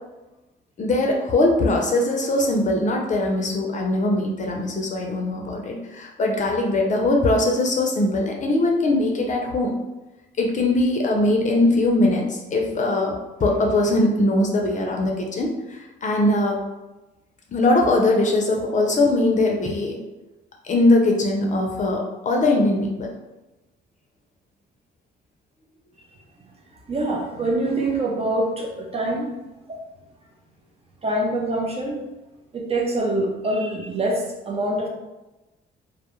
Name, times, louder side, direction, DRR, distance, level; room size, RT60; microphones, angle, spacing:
voice 1, 0.8-9.8 10.4-16.7 17.5-20.0 20.6-23.1, left 2 dB, 40° left, 0 dB, 0.5 m, -21 dB
voice 2, 26.9-29.3 29.7-29.8 31.0-32.0 32.5-34.9, right 1 dB, 30° right, -1 dB, 0.5 m, -25 dB
2.2 x 2.0 x 2.9 m, 1.0 s
cardioid pair, 90°, 20 cm